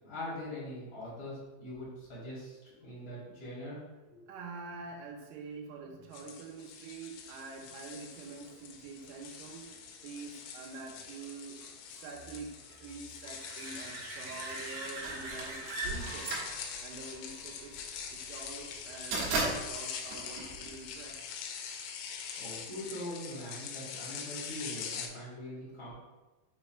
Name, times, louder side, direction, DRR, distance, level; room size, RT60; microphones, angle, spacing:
voice 1, 0.0-3.8 4.1-4.3 22.4-25.9, left 1 dB, 55° left, -8 dB, 0.9 m, -42 dB
voice 2, 4.3-9.7 10.0-11.6 11.9-16.4 16.8-17.8 18.1-21.2, right 4 dB, 80° right, 1 dB, 3.4 m, -46 dB
sound 1, 6.1-25.1, left 7 dB, 85° left, 2.6 m, -44 dB
sound 2, 7.6-18.9 24.5-24.6, right 2 dB, 45° right, 2.7 m, -46 dB
sound 3, 15.0-21.2, right 2 dB, 65° right, 2.9 m, -36 dB
7.5 x 3.4 x 4.4 m, 1.1 s
omnidirectional pair, 5.7 m